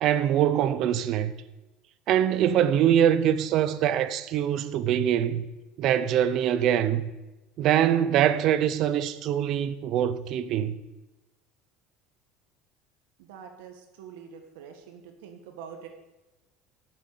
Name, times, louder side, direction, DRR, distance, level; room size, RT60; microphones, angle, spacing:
voice 1, 0.0-1.3 2.1-5.4 5.8-7.1 7.6-10.8, right 10 dB, 45° right, 0.7 m, -23 dB
voice 2, 13.2-15.9, right 7 dB, 90° right, 1.7 m, -45 dB
9.4 x 7.4 x 8.4 m
cardioid pair, 155°, 0 cm